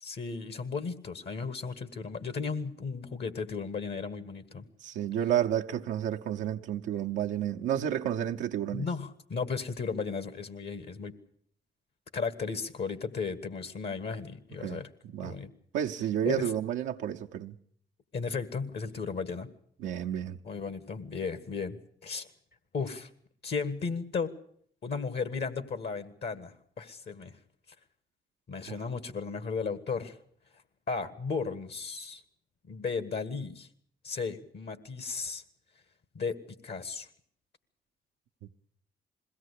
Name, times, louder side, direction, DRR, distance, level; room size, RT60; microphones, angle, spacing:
voice 1, 0.0-4.6 8.7-11.1 12.1-14.9 15.2-15.5 16.3-16.5 18.1-19.5 20.4-22.3 22.7-23.1 23.4-24.3 24.8-27.3 28.5-30.2 30.9-32.2 32.7-33.7 34.0-35.4 36.2-36.4 36.6-37.1, left 5 dB, 60° left, 1.8 m, -35 dB
voice 2, 4.8-8.9 14.6-14.8 15.1-15.4 15.7-17.6 19.8-20.4 28.7-28.8, right 10 dB, 90° right, 0.9 m, -31 dB
21.5 x 17.0 x 8.4 m
supercardioid pair, 50°, 19 cm